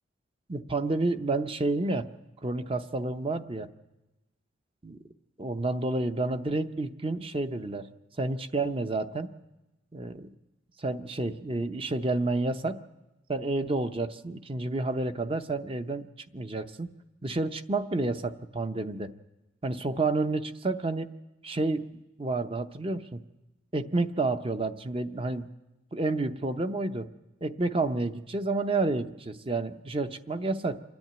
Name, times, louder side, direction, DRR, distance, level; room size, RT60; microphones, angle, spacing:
voice 1, 0.5-2.1 2.4-3.7 4.8-5.0 5.4-7.9 8.2-9.3 9.9-10.3 10.8-12.8 13.3-16.1 16.3-16.9 17.2-19.1 19.6-21.1 21.4-21.9 22.2-23.2 23.7-25.5 25.9-27.1 27.4-30.8, right 2 dB, 30° right, 9 dB, 0.7 m, -30 dB
27.5 x 10.5 x 9.2 m, 1.0 s
head